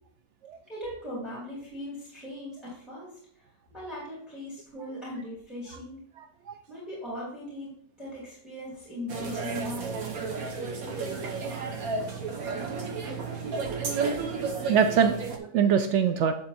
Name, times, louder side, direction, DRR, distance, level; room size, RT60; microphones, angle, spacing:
voice 1, 0.7-3.4 3.7-6.0 6.7-10.0, left 1 dB, ahead, -7 dB, 3.0 m, -39 dB
sound 1, 9.1-15.4, right 4 dB, 60° right, 1.5 m, -32 dB
voice 2, 11.8-12.2 12.5-13.2 13.6-14.0 14.7-16.4, right 7 dB, 90° right, 7 dB, 0.6 m, -26 dB
9.6 x 3.9 x 4.3 m, 0.63 s
omnidirectional pair, 1.8 m